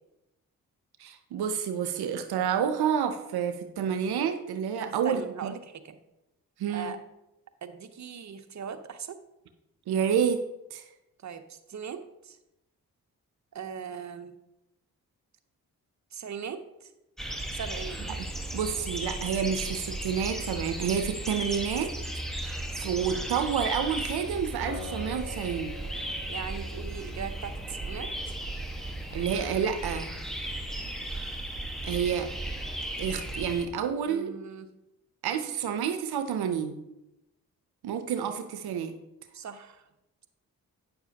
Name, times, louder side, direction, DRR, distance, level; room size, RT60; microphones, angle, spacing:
voice 1, 1.0-5.5 6.6-6.9 9.9-10.4 10.7-10.9 18.2-18.3 18.5-21.9 22.3-25.7 29.1-30.1 31.8-32.3 33.0-34.3 35.2-36.8 37.8-39.0, right 8 dB, 85° right, 8 dB, 0.6 m, -29 dB
voice 2, 4.8-6.0 6.7-7.0 7.6-9.2 11.2-12.4 13.5-14.3 16.1-16.9 17.5-18.0 26.3-28.3 34.1-34.7 39.3-39.9, right 7 dB, 50° right, 8 dB, 0.8 m, -39 dB
sound 1, 17.2-33.7, right 1 dB, ahead, 1.2 m, -35 dB
Acoustic guitar, 24.7-27.8, left 2 dB, 50° left, 2.0 m, -44 dB
9.2 x 6.8 x 2.8 m, 0.92 s
cardioid pair, 45°, 37 cm